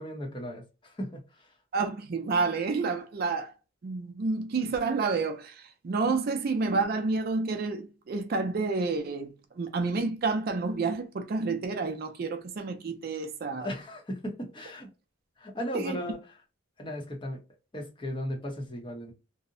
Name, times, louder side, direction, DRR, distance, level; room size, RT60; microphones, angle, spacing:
voice 1, 0.0-1.5 13.6-14.9 15.4-16.2 16.8-17.4 17.7-19.1, equal, 25° left, 0.7 m, -36 dB
voice 2, 1.7-3.5 3.8-13.7 15.7-16.0, right 4 dB, 45° right, 0.4 m, -29 dB
2.7 x 2.0 x 2.5 m
head